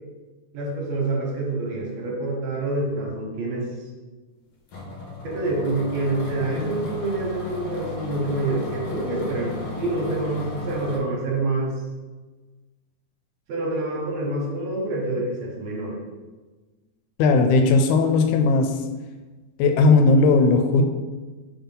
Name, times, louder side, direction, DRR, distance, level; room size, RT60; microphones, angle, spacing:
voice 1, 0.5-3.9 5.2-11.7 13.5-16.0, right 2 dB, 65° right, -2 dB, 2.1 m, -27 dB
sound 1, 4.7-11.0, left 3 dB, 60° left, 1.6 m, -34 dB
voice 2, 17.2-18.8 19.6-20.8, left 3 dB, 80° left, 5 dB, 1.9 m, -17 dB
4.5 x 3.9 x 5.3 m, 1.3 s
omnidirectional pair, 3.4 m